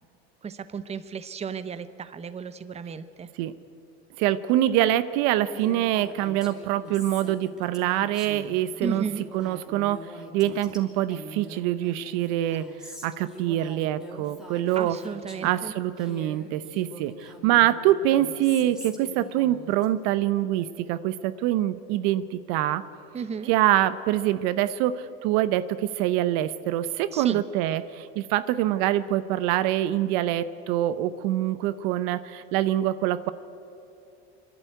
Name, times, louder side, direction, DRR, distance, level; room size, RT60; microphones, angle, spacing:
voice 1, 0.4-3.3 8.8-9.2 14.7-15.7 23.1-23.5 27.1-27.4, right 6 dB, 20° right, 13 dB, 0.8 m, -34 dB
voice 2, 4.2-9.0 9.3-10.0 10.3-12.7 13.0-15.0 15.4-22.8 23.5-33.3, right 13 dB, 65° right, 14 dB, 0.8 m, -25 dB
Female speech woman speaking, 5.5-15.6 16.0-19.8, equal, ahead, 2.7 m, -44 dB
25.0 x 11.5 x 9.3 m, 2.8 s
supercardioid pair, 105°, 32 cm